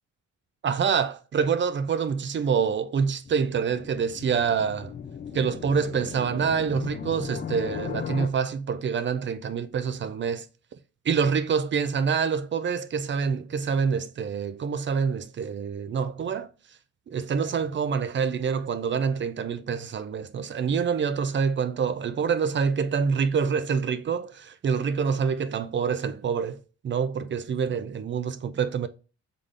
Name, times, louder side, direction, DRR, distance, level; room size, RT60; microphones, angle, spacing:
voice 1, 0.6-4.9 5.3-10.5 11.0-16.5 17.1-26.6 26.8-28.9, right 6 dB, 40° right, 0.5 m, -26 dB
sound 1, 3.3-8.3, left 7 dB, 30° left, 0.4 m, -37 dB
3.8 x 3.7 x 3.2 m
cardioid pair, 90°, 30 cm